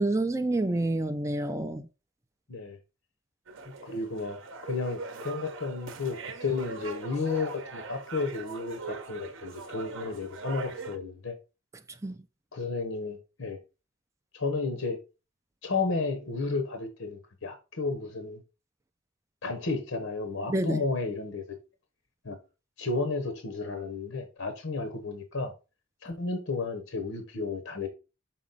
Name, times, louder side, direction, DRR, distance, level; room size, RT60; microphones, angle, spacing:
voice 1, 0.0-1.9 12.0-12.2 20.5-20.8, right 2 dB, 15° right, 0.5 m, -28 dB
sound 1, 3.5-11.0, right 4 dB, 65° right, 0.8 m, -41 dB
voice 2, 3.8-11.3 12.5-13.6 14.3-15.0 15.6-18.4 19.4-21.4 22.2-22.4 22.8-25.5 26.0-27.9, left 3 dB, 75° left, 1.1 m, -32 dB
6.1 x 4.1 x 4.0 m
head